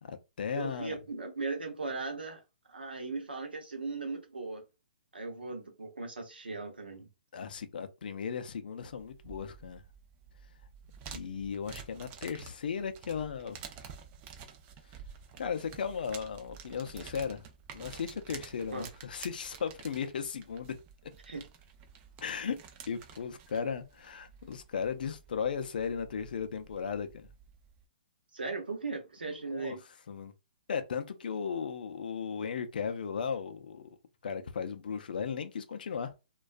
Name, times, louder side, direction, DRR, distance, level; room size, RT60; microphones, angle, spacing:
voice 1, 0.0-1.0 7.3-9.8 11.1-13.6 15.4-17.4 17.7-20.7 22.2-22.6 22.9-27.3 29.5-29.8 30.1-30.3 30.7-34.0 34.2-36.1, left 6 dB, 65° left, 0.4 m, -36 dB
voice 2, 0.5-2.4 2.7-4.6 5.1-7.1 18.7-18.9 21.2-21.4 28.3-29.8, right 3 dB, 90° right, 0.8 m, -38 dB
sound 1, 8.8-27.9, right 7 dB, 25° right, 0.4 m, -51 dB
2.3 x 2.3 x 2.4 m
hypercardioid pair, 130°, 5 cm